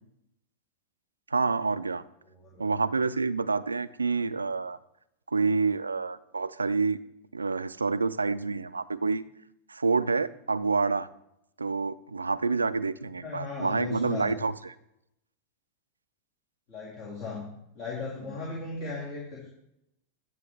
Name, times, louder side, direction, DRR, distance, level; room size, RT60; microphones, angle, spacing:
voice 1, 1.3-2.0 2.6-4.8 5.3-7.0 7.3-9.2 9.7-11.1 11.6-14.7, right 4 dB, 80° right, 16 dB, 0.3 m, -28 dB
voice 2, 2.2-2.6 13.2-14.3 16.7-17.5 17.7-19.5, left 4 dB, 45° left, -5 dB, 2.1 m, -37 dB
9.4 x 7.4 x 3.2 m, 0.81 s
figure-of-eight pair, 90°, 0 cm